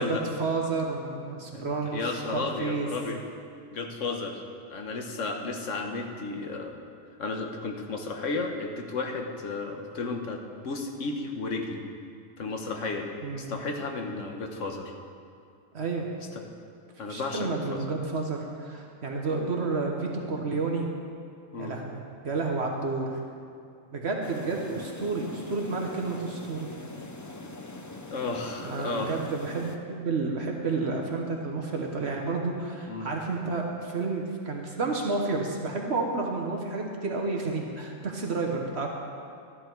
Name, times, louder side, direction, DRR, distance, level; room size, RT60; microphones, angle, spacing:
voice 1, 0.0-2.9 13.2-13.5 15.7-16.1 17.1-20.8 21.6-22.0 22.2-23.2 23.9-26.7 28.6-38.9, right 3 dB, 55° right, 0 dB, 1.3 m, -30 dB
voice 2, 1.5-3.2 3.7-4.4 4.7-6.8 7.2-11.8 12.4-14.9 16.3-16.4 17.0-17.8 21.5-21.7 28.1-29.1 32.9-33.1, left 3 dB, 70° left, 3 dB, 1.4 m, -33 dB
sound 1, 24.2-29.8, left 2 dB, 25° left, 0.3 m, -42 dB
12.5 x 10.5 x 4.6 m, 2.5 s
omnidirectional pair, 1.4 m